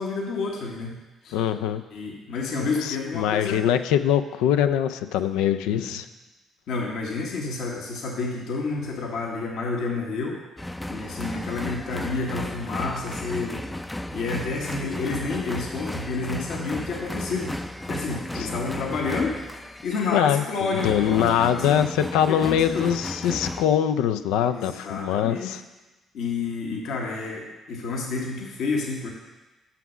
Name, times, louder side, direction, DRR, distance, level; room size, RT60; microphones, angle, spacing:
voice 1, 0.0-1.4 1.9-3.6 5.6-5.9 6.7-10.4 10.9-13.6 14.1-17.5 17.9-19.4 19.8-21.8 22.3-22.9 24.5-25.6 26.1-29.1, left 4 dB, 75° left, 0 dB, 1.2 m, -30 dB
voice 2, 1.3-1.8 2.6-6.1 18.3-18.5 20.1-25.6, left 9 dB, 90° left, 9 dB, 0.4 m, -23 dB
sound 1, 10.6-23.7, left 1 dB, 10° left, 0.4 m, -34 dB
6.2 x 5.8 x 6.1 m, 1.1 s
supercardioid pair, 75°, 0 cm